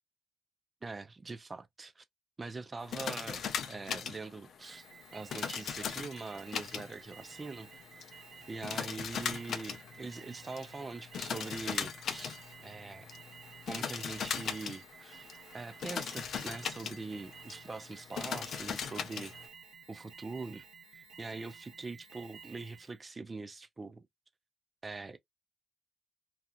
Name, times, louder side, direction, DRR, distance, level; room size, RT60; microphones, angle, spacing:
voice 1, 0.8-2.0 2.4-4.9 5.1-7.7 8.5-13.1 13.6-19.3 19.9-20.6 20.9-24.1 24.8-25.2, right 3 dB, 25° right, 0.5 m, -43 dB
sound 1, 2.8-19.5, left 7 dB, 65° left, 0.5 m, -40 dB
Alarm, 4.6-23.0, right 6 dB, 65° right, 1.0 m, -54 dB
2.8 x 2.3 x 2.4 m
cardioid pair, 90°, 0 cm